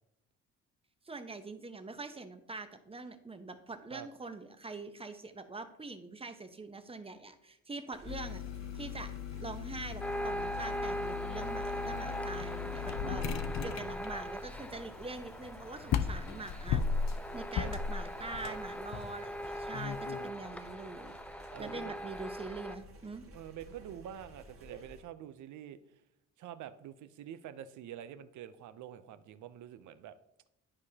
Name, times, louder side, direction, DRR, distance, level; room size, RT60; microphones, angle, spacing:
voice 1, 1.0-8.4 8.7-16.8 17.3-21.1 21.6-23.2, right 3 dB, 20° right, 9 dB, 0.8 m, -44 dB
sound 1, 7.9-25.0, equal, 45° right, 1.6 m, -55 dB
sound 2, 8.1-20.3, left 6 dB, 60° left, 0.6 m, -38 dB
sound 3, 10.0-22.7, equal, 5° left, 0.5 m, -41 dB
voice 2, 13.0-13.8 17.5-17.7 18.4-18.6 21.5-22.0 23.3-25.8 26.4-30.2, right 10 dB, 75° right, 13 dB, 0.6 m, -47 dB
11.5 x 4.9 x 2.8 m, 0.84 s
cardioid pair, 90°, 30 cm